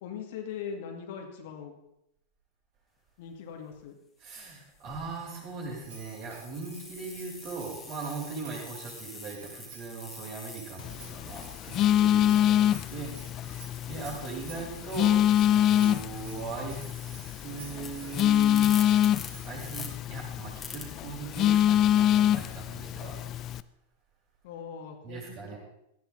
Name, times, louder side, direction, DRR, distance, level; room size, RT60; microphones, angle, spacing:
voice 1, 0.0-1.8 3.2-4.0 12.0-12.5 24.4-25.6, left 7 dB, 50° left, 3 dB, 2.3 m, -41 dB
sound 1, 3.5-3.8 4.5-14.7 15.0-19.9 20.6-20.8, left 5 dB, 15° left, 2.6 m, -47 dB
voice 2, 4.2-13.6 13.9-23.2 25.0-25.6, right 4 dB, 40° right, -3 dB, 7.1 m, -40 dB
Bell, 5.8-19.6, right 4 dB, 60° right, 6.9 m, -51 dB
Telephone, 10.8-23.6, left 11 dB, 35° left, 0.5 m, -26 dB
18.0 x 14.0 x 3.9 m, 0.81 s
figure-of-eight pair, 90°, 0 cm